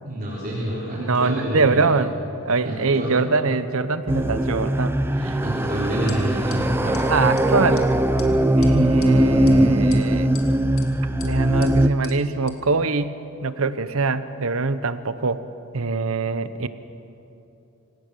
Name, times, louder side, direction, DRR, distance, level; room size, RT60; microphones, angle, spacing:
voice 1, 0.0-1.9 2.6-3.2 5.4-7.0, right 1 dB, 40° right, -6 dB, 3.8 m, -28 dB
voice 2, 1.0-2.1 2.4-5.4 7.1-7.9 8.6-10.3 11.2-15.4 15.7-16.7, right 4 dB, 70° right, 13 dB, 0.9 m, -23 dB
sound 1, 4.1-11.9, right 1 dB, 10° right, 0.6 m, -20 dB
sound 2, 6.1-6.2 6.5-6.6 6.9-7.0 7.4-7.5 7.7-7.9 8.2-8.3 8.6-9.1 9.5-9.6 9.9-10.5 10.8-10.9 11.2-11.3 11.6-11.7 12.0-12.1 12.5-12.6, left 9 dB, 70° left, 2.3 m, -40 dB
25.5 x 17.0 x 6.8 m, 2.9 s
head